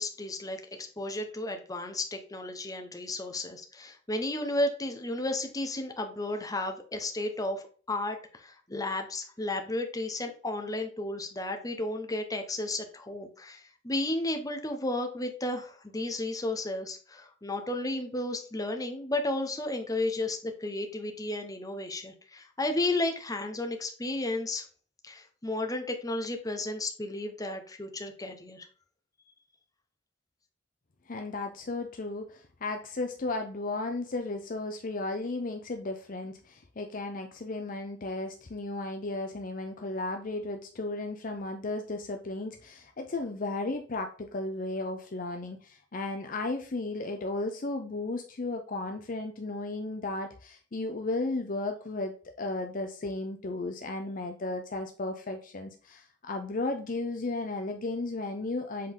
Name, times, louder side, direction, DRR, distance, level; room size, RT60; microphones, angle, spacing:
voice 1, 0.0-24.6 25.0-28.7, left 2 dB, 20° left, 5 dB, 1.0 m, -33 dB
voice 2, 31.1-58.9, left 2 dB, 45° left, 5 dB, 0.6 m, -34 dB
7.5 x 3.9 x 3.7 m, 0.40 s
head